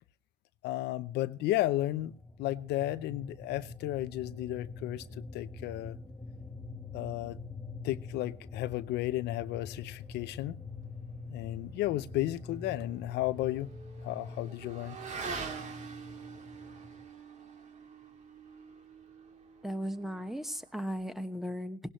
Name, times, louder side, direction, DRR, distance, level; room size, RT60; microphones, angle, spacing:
voice 1, 0.6-2.1 2.4-5.0 5.3-6.0 6.9-7.4 7.8-10.6 11.3-13.7 14.0-15.0, left 15 dB, 85° left, 0.7 m, -33 dB
sound 1, 2.0-17.0, left 3 dB, 15° left, 1.2 m, -45 dB
Motorcycle / Accelerating revving vroom, 12.2-21.0, right 5 dB, 45° right, 2.5 m, -45 dB
voice 2, 19.6-21.8, equal, ahead, 1.2 m, -36 dB
18.0 x 17.5 x 3.1 m
cardioid pair, 110°, 17 cm